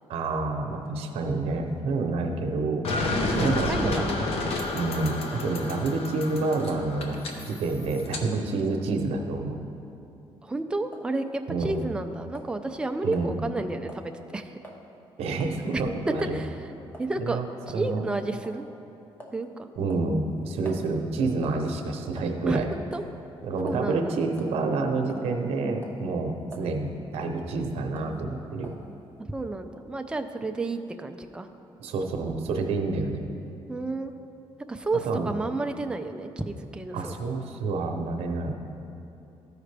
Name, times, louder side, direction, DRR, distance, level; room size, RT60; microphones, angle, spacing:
voice 1, 0.1-2.8 3.3-4.0 4.7-7.2 7.5-9.6 11.5-11.8 13.0-13.4 15.2-16.4 17.2-17.5 17.7-18.0 19.8-22.7 23.4-28.7 31.8-33.3 35.1-35.3 36.9-38.5, right 3 dB, 85° right, 3 dB, 0.8 m, -28 dB
sound 1, 2.8-8.2, left 2 dB, 75° left, 0.8 m, -30 dB
voice 2, 3.2-4.1 10.4-14.5 15.7-15.8 16.3-17.4 17.7-18.7 19.3-19.7 22.5-23.0 23.6-24.1 29.3-31.5 33.7-34.1 34.7-37.1, right 2 dB, 10° right, 6 dB, 0.4 m, -31 dB
sound 2, 10.9-11.1 11.6-12.1 12.3-12.5 13.1-13.3 13.9-14.1 14.6-14.8 15.4-15.6 16.2-16.3 16.9-17.1 17.7-17.8 18.4-18.6 19.2-19.4 19.9-20.9 21.4-21.7 22.2-22.5 22.9-23.1 23.7-23.8 24.3-24.6 25.1-25.5 25.8-26.0 26.5-26.7 27.1-27.4 28.0-28.2 28.6-28.8, equal, 20° left, 1.0 m, -46 dB
14.0 x 4.9 x 3.3 m, 2.8 s
cardioid pair, 115°, 10 cm